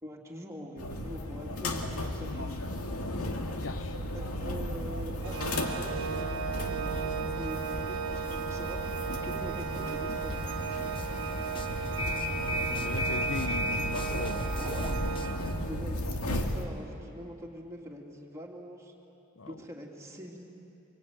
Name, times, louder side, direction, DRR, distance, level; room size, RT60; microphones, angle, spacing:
voice 1, 0.0-2.6 4.1-8.8 9.2-10.4 15.6-18.9 19.5-20.4, equal, 15° right, -2 dB, 2.9 m, -44 dB
sound 1, 0.8-16.7, left 1 dB, 90° left, 2.2 m, -34 dB
voice 2, 2.7-4.0 12.8-14.5 19.4-19.6, left 4 dB, 60° left, 13 dB, 0.7 m, -40 dB
Organ, 5.2-16.0, right 7 dB, 70° right, 1.2 m, -36 dB
sound 2, 10.3-16.3, left 2 dB, 20° left, 0.7 m, -42 dB
25.5 x 23.5 x 9.5 m, 2.9 s
head